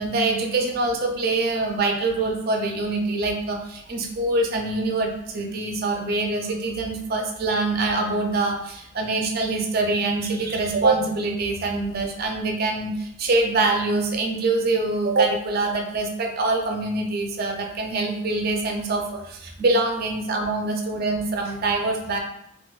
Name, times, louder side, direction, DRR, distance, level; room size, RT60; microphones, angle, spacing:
voice 1, 0.0-22.2, right 2 dB, 55° right, 2 dB, 0.5 m, -24 dB
3.7 x 2.5 x 2.4 m, 0.79 s
head